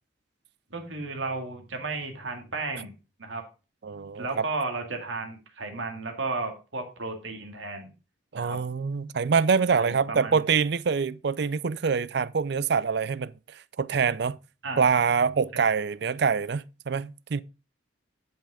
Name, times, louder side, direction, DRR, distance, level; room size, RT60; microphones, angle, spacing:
voice 1, 0.7-2.9 3.2-3.4 4.1-7.9 8.4-8.6 9.7-10.4 14.6-14.8, right 3 dB, 75° right, 2.3 m, -33 dB
voice 2, 3.8-4.4 8.3-14.4 14.8-17.4, right 5 dB, 55° right, 0.4 m, -25 dB
10.5 x 5.7 x 4.9 m
head